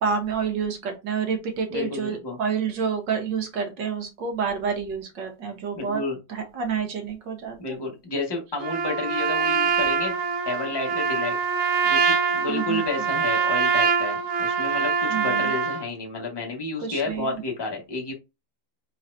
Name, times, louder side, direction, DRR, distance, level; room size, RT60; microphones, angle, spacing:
voice 1, 0.0-6.0 6.3-7.8 12.5-12.9 15.1-15.5 16.8-17.4, right 6 dB, 65° right, 4 dB, 1.7 m, -28 dB
voice 2, 1.7-2.4 5.7-6.2 7.6-10.2 10.4-11.3 11.8-18.1, left 3 dB, 15° left, 0 dB, 1.2 m, -31 dB
Trumpet, 8.6-15.9, right 6 dB, 85° right, 1.6 m, -24 dB
4.2 x 4.0 x 2.6 m, 0.25 s
omnidirectional pair, 2.1 m